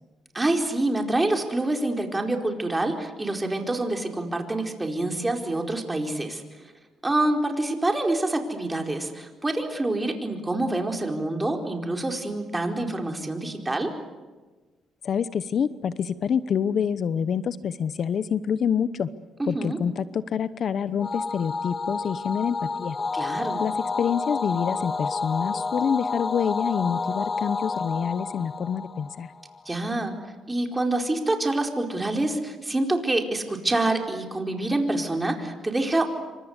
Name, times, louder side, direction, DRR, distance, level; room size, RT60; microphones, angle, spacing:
voice 1, 0.3-6.4 7.0-14.0 19.4-19.8 23.1-23.6 29.6-30.2 30.5-36.1, right 2 dB, 15° right, 3 dB, 4.6 m, -26 dB
voice 2, 15.0-19.1 19.5-23.0 23.6-23.7 24.0-29.3, left 7 dB, 55° left, 15 dB, 0.9 m, -27 dB
sound 1, 21.0-29.6, left 4 dB, 30° left, 0.8 m, -30 dB
28.5 x 25.0 x 8.2 m, 1.3 s
cardioid pair, 90°, 0 cm